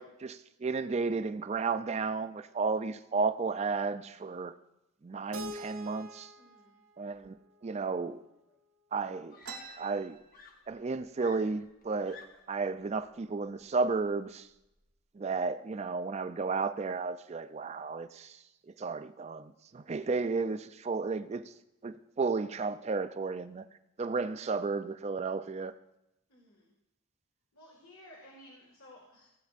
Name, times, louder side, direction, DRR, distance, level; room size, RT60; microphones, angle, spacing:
voice 1, 0.0-4.5 5.0-6.3 7.0-7.3 7.6-8.2 8.9-9.4 9.8-10.2 10.7-12.2 12.5-14.5 15.2-18.4 18.7-21.5 21.8-23.6 24.0-25.7, right 4 dB, 30° right, 12 dB, 0.3 m, -33 dB
Keyboard (musical), 5.3-8.3, equal, 60° right, 0.7 m, -46 dB
voice 2, 6.4-6.8 26.3-26.7 27.5-29.3, left 1 dB, 80° left, -2 dB, 1.8 m, -55 dB
Screaming, 8.5-8.6 9.3-10.1 10.3-12.6 13.6-13.9, left 4 dB, 40° left, 0.8 m, -54 dB
sound 1, 9.4-11.0 11.4-11.5 11.7-12.4 13.0-13.1 13.8-14.0 14.5-14.9, right 5 dB, 90° right, 1.3 m, -48 dB
16.5 x 8.3 x 2.5 m, 0.89 s
head